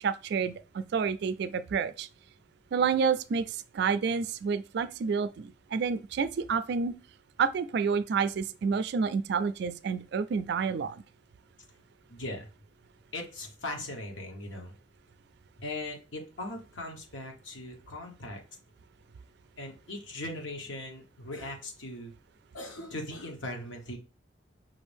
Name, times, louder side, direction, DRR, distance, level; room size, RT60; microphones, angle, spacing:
voice 1, 0.0-2.1 2.7-6.9 7.4-11.0, right 6 dB, 60° right, 0.3 m, -29 dB
voice 2, 12.1-12.5 13.1-14.7 15.6-18.4 19.6-22.1 22.5-24.0, left 1 dB, 90° left, 1.2 m, -39 dB
5.7 x 2.6 x 3.4 m
head